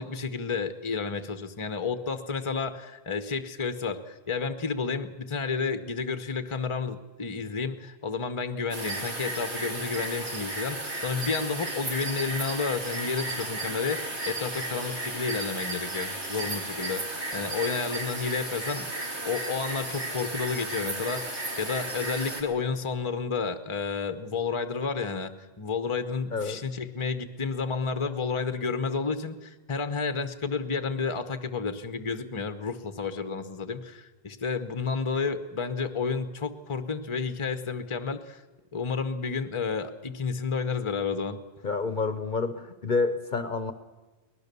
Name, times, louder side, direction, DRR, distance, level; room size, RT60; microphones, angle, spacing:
voice 1, 0.0-14.0 14.2-38.4 38.7-41.4, left 5 dB, 30° left, 10 dB, 1.0 m, -31 dB
sound 1, 8.7-22.4, right 2 dB, 75° right, 3.0 m, -34 dB
voice 2, 41.6-43.7, left 4 dB, 45° left, 10 dB, 1.0 m, -28 dB
23.0 x 19.0 x 6.9 m, 1.2 s
omnidirectional pair, 1.2 m